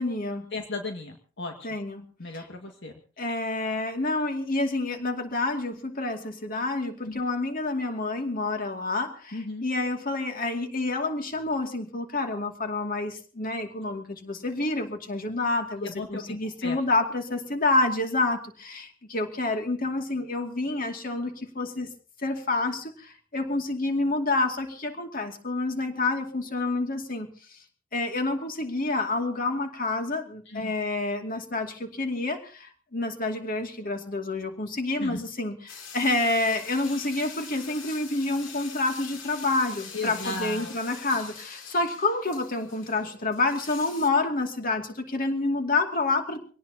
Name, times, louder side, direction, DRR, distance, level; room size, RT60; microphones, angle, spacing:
voice 1, 0.0-0.4 1.6-2.0 2.3-2.4 3.2-21.9 22.2-27.3 27.9-46.5, left 2 dB, 45° left, 4 dB, 2.5 m, -28 dB
voice 2, 0.5-1.7 2.2-2.9 7.0-7.2 9.3-9.7 15.8-16.8 30.5-30.7 35.0-35.2 39.9-40.7, left 3 dB, 65° left, 3 dB, 1.9 m, -35 dB
sound 1, 35.7-44.1, left 6 dB, 85° left, 3.1 m, -43 dB
25.0 x 18.0 x 2.9 m, 0.39 s
head